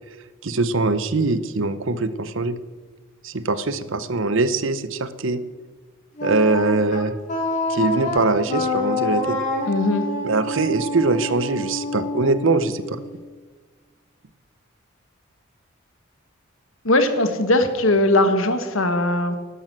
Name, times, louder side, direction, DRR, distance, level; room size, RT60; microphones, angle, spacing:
voice 1, 0.4-2.6 3.2-5.4 6.2-7.1 7.7-9.4 10.2-13.0, right 3 dB, 65° right, 15 dB, 0.8 m, -22 dB
Wind instrument woodwind instrument, 6.2-13.1, left 2 dB, 40° left, 4.3 m, -27 dB
voice 2, 9.7-10.1 16.8-19.3, left 1 dB, 75° left, 8 dB, 1.7 m, -19 dB
12.0 x 11.5 x 7.6 m, 1.4 s
head